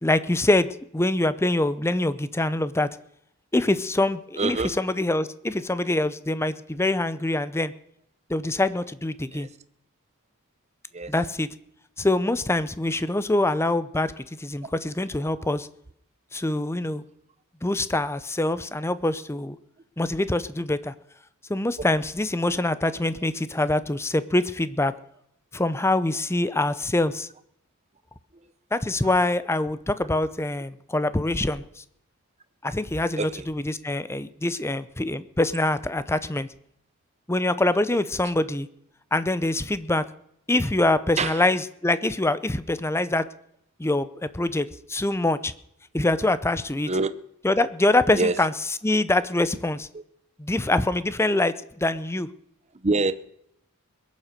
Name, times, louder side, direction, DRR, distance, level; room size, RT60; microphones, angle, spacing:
voice 1, 0.0-2.9 3.5-7.7 8.3-9.5 11.1-11.5 12.0-15.7 16.3-17.0 17.6-19.6 20.0-20.9 21.5-24.9 25.5-27.3 28.7-31.8 32.6-36.5 37.3-38.7 39.1-40.0 40.5-43.3 43.8-45.5 45.9-46.9 47.4-48.5 48.8-49.9 50.4-52.3, left 2 dB, 10° left, 0.6 m, -24 dB
voice 2, 4.4-4.8 9.3-9.5 10.9-11.1 33.2-33.5 41.2-41.4 46.9-47.1 48.2-48.4 49.9-50.0 52.8-53.1, right 3 dB, 30° right, 0.8 m, -25 dB
21.5 x 7.4 x 6.5 m
head